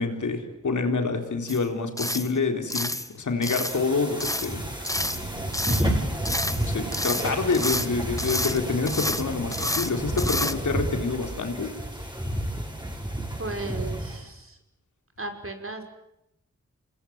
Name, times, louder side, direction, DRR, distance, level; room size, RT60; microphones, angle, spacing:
voice 1, 0.0-4.6 5.7-6.1 6.6-11.7, left 4 dB, 90° left, 4 dB, 3.9 m, -27 dB
sound 1, 1.5-1.6 2.0-2.3 2.7-3.1 3.4-3.8 4.2-4.5 4.8-5.2 5.5-5.9 6.2-6.6 6.9-7.9 8.2-8.6 8.8-9.2 9.5-9.9 10.2-10.5, left 1 dB, 10° left, 1.5 m, -29 dB
sound 2, 3.5-14.2, right 1 dB, 15° right, 7.0 m, -32 dB
sound 3, 4.9-11.2, right 2 dB, 65° right, 5.7 m, -37 dB
voice 2, 13.3-14.6 15.2-15.8, right 2 dB, 45° right, 4 dB, 5.6 m, -35 dB
27.5 x 21.0 x 9.5 m, 0.85 s
cardioid pair, 40°, 29 cm